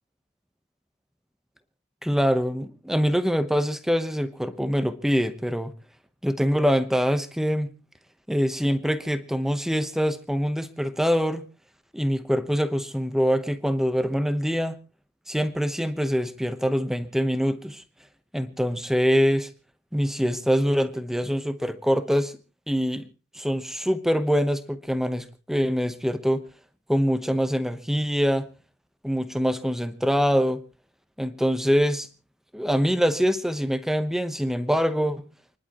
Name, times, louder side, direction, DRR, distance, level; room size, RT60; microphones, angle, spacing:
voice 1, 2.0-5.7 6.2-7.8 8.3-11.5 11.9-14.8 15.3-17.8 18.3-19.5 19.9-22.3 22.7-23.0 23.3-26.4 26.9-28.5 29.0-30.6 31.2-32.1 32.5-35.2, equal, ahead, 10 dB, 0.9 m, -24 dB
29.5 x 11.0 x 3.0 m, 0.33 s
head